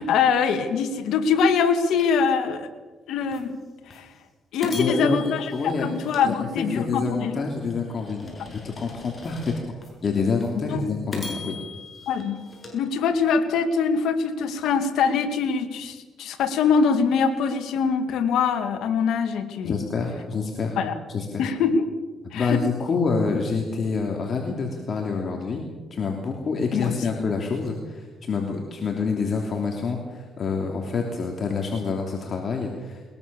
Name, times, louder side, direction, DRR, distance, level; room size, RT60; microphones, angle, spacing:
voice 1, 0.0-2.7 3.1-3.6 3.9-4.1 4.5-7.4 10.7-10.8 12.1-12.4 12.7-19.8 20.8-20.9 21.4-21.9 22.3-22.6 26.7-26.9, left 5 dB, 80° left, 8 dB, 2.2 m, -23 dB
sound 1, 3.3-3.4 3.9-4.0 4.6-7.0 7.5-9.9 10.4-10.5 11.1-13.5, left 3 dB, 30° left, 7.9 m, -39 dB
voice 2, 4.7-5.9 6.2-9.7 10.0-11.6 19.6-20.8 21.1-21.4 22.3-25.6 25.9-33.0, left 4 dB, 50° left, 2 dB, 3.0 m, -27 dB
21.5 x 21.5 x 7.0 m, 1.3 s
cardioid pair, 90°, 0 cm